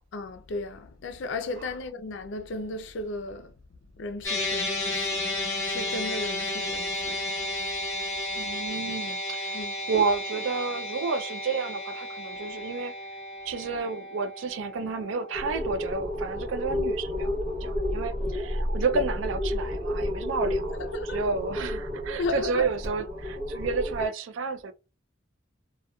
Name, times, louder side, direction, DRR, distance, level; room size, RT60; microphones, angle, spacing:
voice 1, 0.1-3.5 4.0-5.2 5.5-7.2 9.5-9.7 20.9-21.2 22.2-22.7, left 2 dB, 70° left, 0.4 m, -35 dB
sound 1, 4.2-16.7, left 1 dB, 15° left, 0.9 m, -33 dB
voice 2, 8.4-9.6 9.9-12.9 13.5-17.3 17.6-24.7, right 4 dB, 75° right, 0.4 m, -31 dB
sound 2, 15.3-24.1, left 1 dB, 40° right, 0.9 m, -31 dB
2.8 x 2.2 x 2.2 m
head